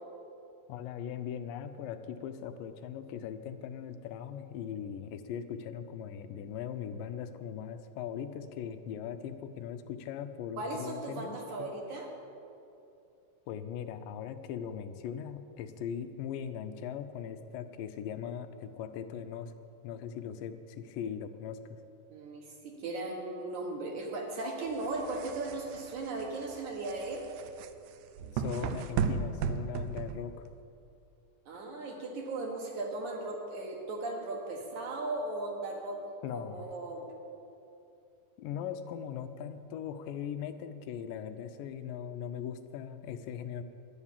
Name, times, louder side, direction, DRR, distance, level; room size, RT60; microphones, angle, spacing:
voice 1, 0.7-11.7 13.5-19.5 19.8-21.8 28.3-30.3 36.2-36.7 38.4-43.6, left 8 dB, 80° left, 9 dB, 2.3 m, -40 dB
voice 2, 10.6-12.1 22.1-27.2 31.5-37.1, right 2 dB, 65° right, 0 dB, 2.7 m, -37 dB
sound 1, 24.7-30.6, right 6 dB, 80° right, 1.8 m, -35 dB
11.5 x 9.8 x 7.3 m, 2.7 s
omnidirectional pair, 4.0 m